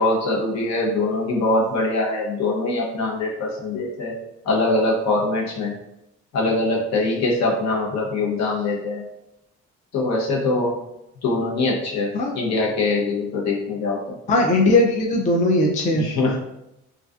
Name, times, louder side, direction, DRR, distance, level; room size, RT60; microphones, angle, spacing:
voice 1, 0.0-4.2 4.5-5.7 6.3-9.0 9.9-10.7 11.2-14.2 15.9-16.4, left 2 dB, 60° left, -3 dB, 0.8 m, -23 dB
voice 2, 14.3-16.0, left 2 dB, 25° left, 0 dB, 0.4 m, -18 dB
2.3 x 2.2 x 2.4 m, 0.85 s
cardioid pair, 90°, 30 cm